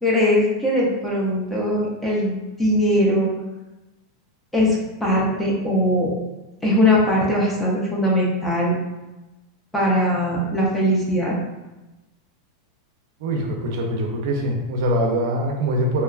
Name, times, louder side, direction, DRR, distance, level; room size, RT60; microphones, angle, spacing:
voice 1, 0.0-3.3 4.5-6.1 6.6-8.8 9.7-11.3, equal, 5° left, -5 dB, 0.4 m, -20 dB
voice 2, 13.2-16.0, right 1 dB, 60° right, 1 dB, 0.5 m, -23 dB
2.8 x 2.2 x 2.3 m, 1.0 s
supercardioid pair, 165°, 2 cm